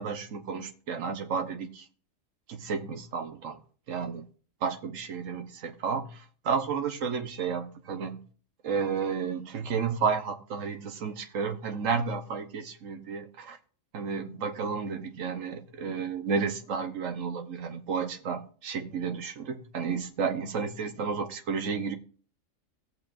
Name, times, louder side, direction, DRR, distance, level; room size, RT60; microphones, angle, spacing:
voice 1, 0.0-1.9 2.5-3.6 3.9-4.3 4.6-8.2 8.6-13.6 13.9-22.0, right 5 dB, 80° right, 1.3 m, -32 dB
17.5 x 7.1 x 2.5 m
omnidirectional pair, 1.3 m